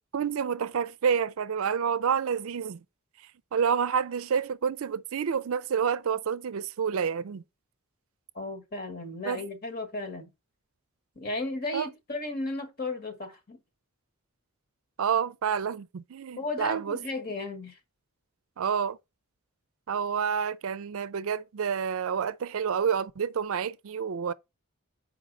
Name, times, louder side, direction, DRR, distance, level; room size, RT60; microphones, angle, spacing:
voice 1, 0.1-2.8 3.5-7.4 9.2-9.4 11.7-11.9 15.0-17.0 18.6-19.0 19.9-24.3, right 7 dB, 65° right, 0.4 m, -28 dB
voice 2, 8.3-10.3 11.1-13.6 16.4-17.8, left 2 dB, 45° left, 1.5 m, -34 dB
7.4 x 4.8 x 4.0 m
head